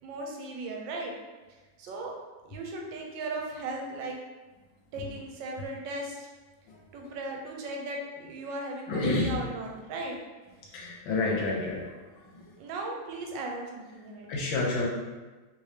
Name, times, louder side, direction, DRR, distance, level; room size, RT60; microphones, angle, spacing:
voice 1, 0.0-1.1 1.8-2.1 2.4-4.2 4.9-6.3 6.9-10.2 12.6-14.4, right 2 dB, 80° right, 0 dB, 1.3 m, -37 dB
voice 2, 8.9-9.3 10.7-11.8 12.3-12.5 14.3-14.9, left 3 dB, 85° left, -2 dB, 1.3 m, -28 dB
3.2 x 2.7 x 3.2 m, 1.2 s
omnidirectional pair, 2.1 m